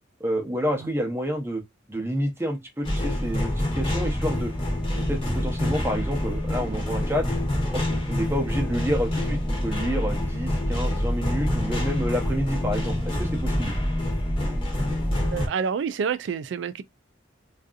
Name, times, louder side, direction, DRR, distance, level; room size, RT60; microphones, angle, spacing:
voice 1, 0.2-1.6 1.9-4.5 5.0-7.3 7.7-13.7, equal, 10° right, 0.6 m, -29 dB
sound 1, 2.8-15.5, left 1 dB, 25° left, 0.8 m, -26 dB
voice 2, 15.2-16.8, right 6 dB, 65° right, 0.3 m, -28 dB
2.6 x 2.4 x 2.3 m
head